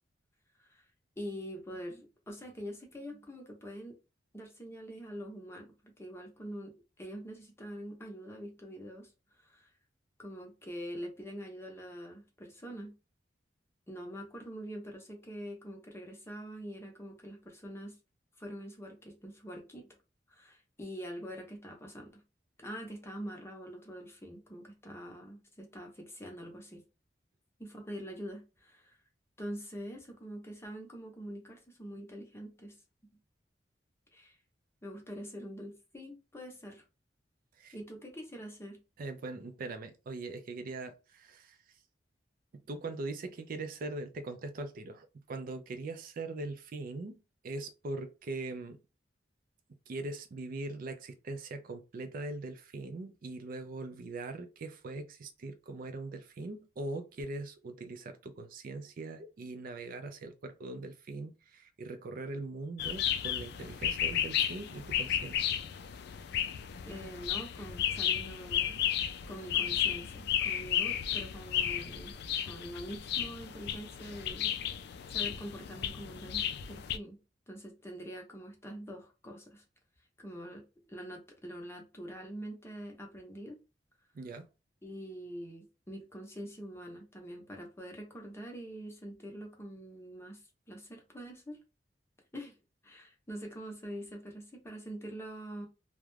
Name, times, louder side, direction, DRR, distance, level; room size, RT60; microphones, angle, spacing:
voice 1, 1.2-4.0 4.3-9.1 9.4-9.7 10.2-12.9 13.9-17.9 18.4-19.9 20.3-22.2 22.6-26.8 27.6-28.9 29.4-32.8 34.1-34.4 34.8-36.8 37.7-38.8 66.8-68.8 69.3-72.1 72.4-74.8 75.1-77.2 77.5-79.6 80.2-83.6 84.8-90.4 90.7-91.6 92.3-92.5 92.8-95.7, equal, 15° left, 0.7 m, -44 dB
voice 2, 39.0-41.6 42.5-48.8 49.7-65.5 84.1-84.5, right 2 dB, 50° right, 0.4 m, -41 dB
sound 1, 62.8-77.0, left 10 dB, 65° left, 0.3 m, -33 dB
2.4 x 2.1 x 3.1 m
head